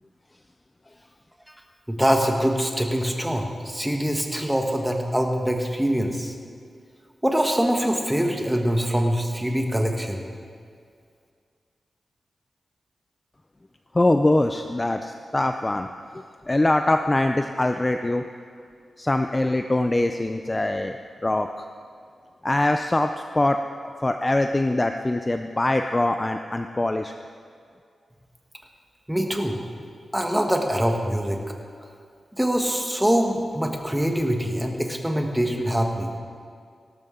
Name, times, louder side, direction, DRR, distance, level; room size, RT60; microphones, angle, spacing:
voice 1, 1.9-6.3 7.2-10.2 29.1-29.6 30.1-31.4 32.4-36.1, equal, 5° right, 2 dB, 1.3 m, -24 dB
voice 2, 13.9-15.9 16.1-18.2 19.0-21.0 21.2-21.5 22.4-23.6 24.0-27.1, left 2 dB, 20° left, 6 dB, 0.4 m, -23 dB
18.5 x 12.5 x 3.7 m, 2.2 s
wide cardioid pair, 135°, 0 cm